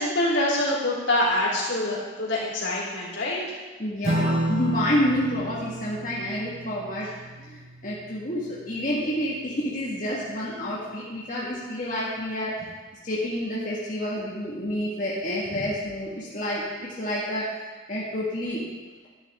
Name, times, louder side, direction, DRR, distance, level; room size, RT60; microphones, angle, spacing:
voice 1, 0.0-3.6, left 1 dB, 75° left, -5 dB, 3.7 m, -25 dB
voice 2, 3.8-7.1 7.4-12.7 13.0-18.6, equal, 40° left, -7 dB, 1.8 m, -29 dB
Strum, 4.0-10.9, right 1 dB, 35° right, 0.7 m, -32 dB
11.5 x 11.0 x 3.7 m, 1.3 s
head